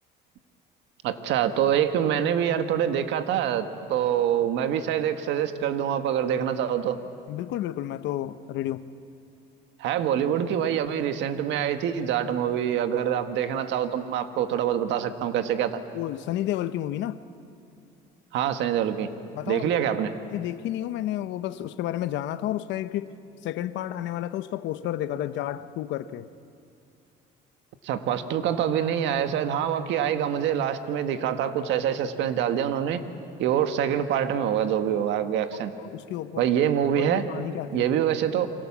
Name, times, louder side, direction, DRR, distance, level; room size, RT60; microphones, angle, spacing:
voice 1, 1.0-7.0 9.8-15.8 18.3-19.1 19.5-20.1 27.8-33.0 33.4-35.7 36.4-37.2 37.7-38.5, right 9 dB, 80° right, 8 dB, 1.7 m, -25 dB
voice 2, 7.3-8.8 15.9-17.2 19.3-19.8 20.3-23.1 23.4-26.3 35.8-36.5 36.9-37.9, left 13 dB, 75° left, 13 dB, 1.0 m, -31 dB
28.5 x 25.0 x 7.4 m, 2.5 s
cardioid pair, 110°, 19 cm